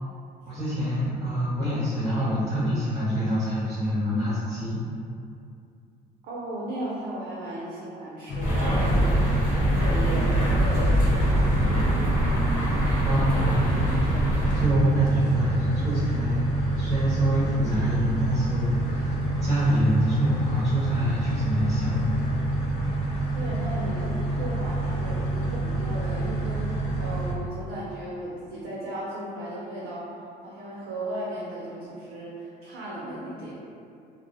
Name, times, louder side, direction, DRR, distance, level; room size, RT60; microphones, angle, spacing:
voice 1, 0.5-4.8 13.0-14.0 14.5-22.2, right 1 dB, 20° right, -9 dB, 0.6 m, -26 dB
voice 2, 6.2-9.2 9.7-11.6 23.3-30.1 30.4-33.5, right 1 dB, 75° right, -7 dB, 0.5 m, -36 dB
sound 1, 8.3-27.3, right 1 dB, 85° left, 0.5 m, -27 dB
sound 2, 8.4-14.7, equal, 50° left, 0.9 m, -24 dB
2.4 x 2.0 x 2.6 m, 2.5 s
cardioid pair, 110°, 17 cm